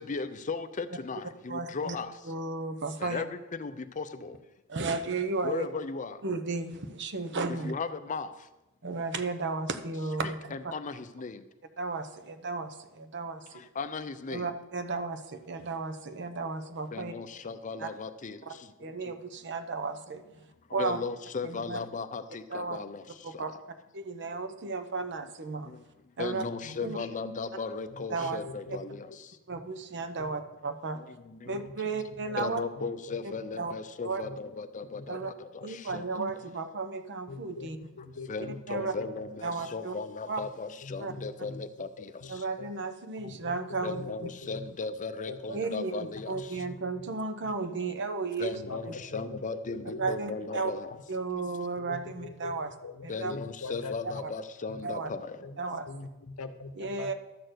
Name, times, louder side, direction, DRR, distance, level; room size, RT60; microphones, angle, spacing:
voice 1, 0.0-2.3 3.0-4.5 5.4-6.2 7.5-8.5 10.2-11.5 13.5-14.5 16.9-19.1 20.7-23.6 24.2-24.4 25.6-29.4 30.9-31.7 32.3-36.2 38.3-42.5 43.8-46.7 48.4-51.0 51.3-51.4 53.1-55.5, left 4 dB, 35° left, 0.5 m, -37 dB
voice 2, 1.5-2.0 2.3-3.2 4.7-5.7 6.2-7.7 8.8-10.5 11.8-13.6 14.3-17.1 17.8-17.9 18.5-18.6 18.8-20.2 20.7-21.0 21.4-21.8 22.5-22.8 23.2-23.5 23.9-25.8 26.2-26.4 26.8-27.0 28.1-28.4 29.5-31.0 31.4-32.6 33.6-33.7 34.0-34.2 35.1-35.3 35.6-37.8 38.7-38.9 39.4-39.9 40.3-40.4 41.0-41.1 42.3-44.0 45.5-46.0 46.3-48.5 50.0-50.7 51.1-52.7 53.0-53.3 54.8-55.1 55.6-55.9 56.8-57.1, right 3 dB, 55° right, 0.8 m, -34 dB
voice 3, 26.6-27.2 27.9-29.0 29.5-29.6 30.2-30.4 31.4-32.4 32.8-33.4 34.2-34.4 34.9-35.3 35.9-36.0 37.3-37.7 38.0-39.3 40.4-40.5 40.8-41.7 42.2-42.3 42.6-42.7 43.2-44.7 45.3-45.4 46.1-47.0 48.5-50.2 51.8-54.2 54.7-54.8 55.0-55.1 55.4-55.6 55.9-57.1, left 3 dB, 70° left, 0.8 m, -43 dB
12.0 x 4.4 x 7.8 m
head